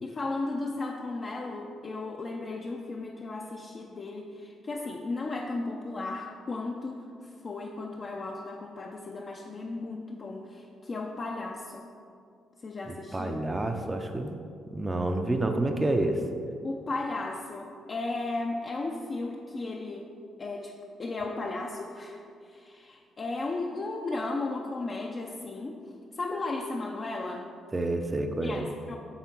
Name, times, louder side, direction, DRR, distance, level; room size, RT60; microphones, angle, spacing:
voice 1, 0.0-7.1 7.4-11.8 12.6-13.4 16.6-20.1 20.4-20.7 21.0-25.8 26.1-27.5 28.4-29.0, left 3 dB, 40° left, -1 dB, 0.6 m, -35 dB
voice 2, 12.9-14.3 14.7-16.2 27.7-28.7, right 2 dB, 20° right, 5 dB, 0.6 m, -29 dB
7.9 x 3.6 x 6.0 m, 2.4 s
cardioid pair, 90°, 0 cm